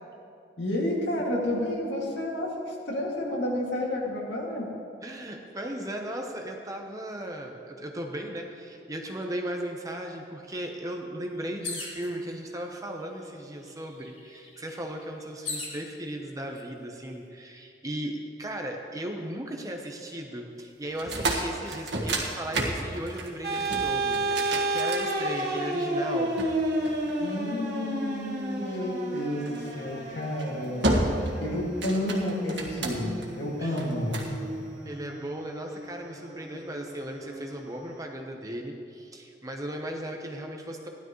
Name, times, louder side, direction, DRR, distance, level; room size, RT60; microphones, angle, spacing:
voice 1, 0.6-4.7 27.2-30.9 31.4-34.3, left 1 dB, 80° left, -2 dB, 2.2 m, -30 dB
voice 2, 5.0-26.4 33.6-33.9 34.9-40.9, right 1 dB, 20° right, 2 dB, 0.8 m, -36 dB
sound 1, 11.6-12.1 13.0-13.1 13.4-15.8 16.6-17.1, left 3 dB, 45° left, 2.8 m, -38 dB
sound 2, 20.9-25.6 26.4-27.7 29.4-29.7 30.2-30.5 30.8-31.4 31.7-33.3 33.8-34.3, right 2 dB, 85° right, 1.7 m, -30 dB
sound 3, 23.4-38.0, right 1 dB, 55° right, 2.5 m, -32 dB
16.0 x 11.5 x 3.1 m, 2.5 s
head